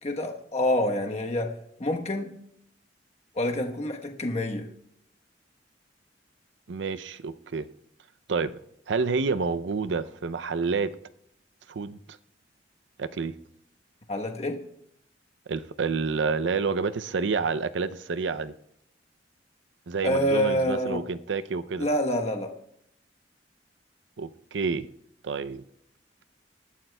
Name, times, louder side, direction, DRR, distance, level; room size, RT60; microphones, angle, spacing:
voice 1, 0.0-1.5 1.8-2.4 3.3-4.7 14.1-14.6 20.0-21.0 21.8-22.5, left 1 dB, 35° left, 1.1 m, -27 dB
voice 2, 6.7-7.7 8.3-8.6 8.9-11.0 11.7-12.2 13.0-13.3 15.5-18.5 19.9-21.9 24.2-24.9 25.2-25.6, right 4 dB, 85° right, 0.5 m, -29 dB
24.0 x 11.5 x 2.3 m
head